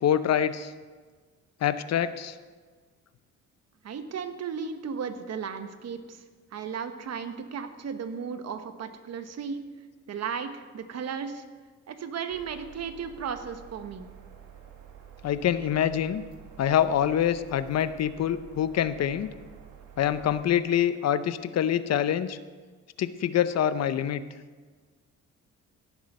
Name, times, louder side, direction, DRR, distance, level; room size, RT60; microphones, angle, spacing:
voice 1, 0.0-0.7 1.6-2.4 15.2-16.2 16.6-19.3 20.0-22.4 23.0-24.2, left 10 dB, 60° left, 13 dB, 0.7 m, -25 dB
voice 2, 3.8-6.2 6.5-9.6 10.1-11.4 11.9-14.1, right 6 dB, 60° right, 9 dB, 1.2 m, -35 dB
sound 1, 12.3-20.4, right 8 dB, 80° right, 1.8 m, -49 dB
17.0 x 7.3 x 5.4 m, 1.4 s
cardioid pair, 90°, 30 cm